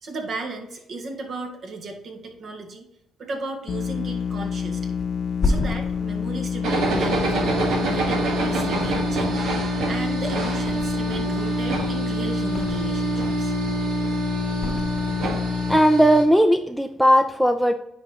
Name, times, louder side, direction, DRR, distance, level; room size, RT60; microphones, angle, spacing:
voice 1, 0.0-2.9 3.2-4.9 5.4-9.6 9.9-13.5 14.0-14.5, right 3 dB, 60° right, 2 dB, 1.6 m, -35 dB
sound 1, 3.7-15.8, left 7 dB, 60° left, 0.4 m, -28 dB
Thump thud, 5.0-8.3 8.7-9.5 9.8-11.2 11.6-13.1 13.5-14.0 14.6-15.6 15.9-16.1, left 3 dB, 40° left, 0.8 m, -32 dB
sound 2, 6.6-16.2, right 4 dB, 80° right, 1.4 m, -27 dB
voice 2, 15.7-17.7, equal, 5° right, 7 dB, 0.4 m, -17 dB
10.0 x 3.7 x 3.0 m, 0.81 s
cardioid pair, 90°, 0 cm